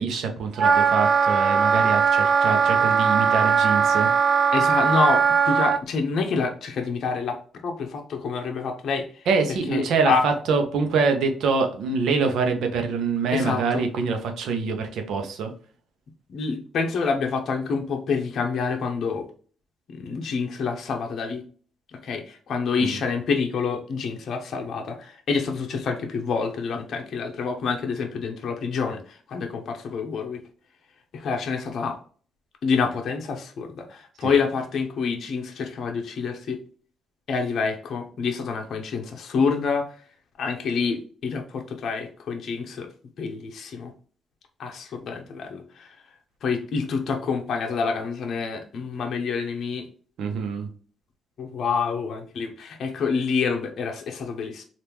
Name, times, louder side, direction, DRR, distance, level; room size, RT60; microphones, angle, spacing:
voice 1, 0.0-4.1 9.3-15.5 22.8-23.0 34.2-34.3 50.2-50.7, right 4 dB, 75° right, 5 dB, 0.7 m, -25 dB
Wind instrument woodwind instrument, 0.6-5.8, right 6 dB, 50° right, 0.3 m, -20 dB
voice 2, 4.5-7.4 7.6-9.2 9.7-10.2 13.3-13.8 16.3-19.3 19.9-21.4 21.9-30.4 31.1-32.0 32.6-36.6 37.3-39.9 40.4-42.9 43.2-43.9 44.6-45.9 46.4-49.9 51.4-54.6, left 5 dB, 60° left, 3 dB, 0.6 m, -27 dB
3.5 x 2.5 x 2.9 m, 0.43 s
cardioid pair, 90°, 0 cm